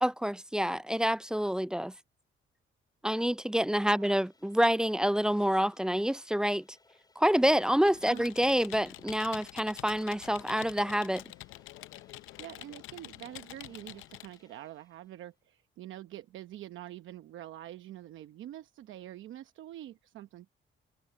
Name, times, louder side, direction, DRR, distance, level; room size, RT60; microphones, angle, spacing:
voice 1, 0.0-1.9 3.0-6.6 7.2-11.2, equal, 5° right, 0.3 m, -27 dB
sound 1, 3.6-15.5, left 3 dB, 20° left, 5.5 m, -66 dB
Computer keyboard, 7.5-14.4, left 16 dB, 90° left, 0.5 m, -47 dB
voice 2, 12.4-20.6, right 13 dB, 80° right, 0.9 m, -46 dB
cardioid pair, 90°, 20 cm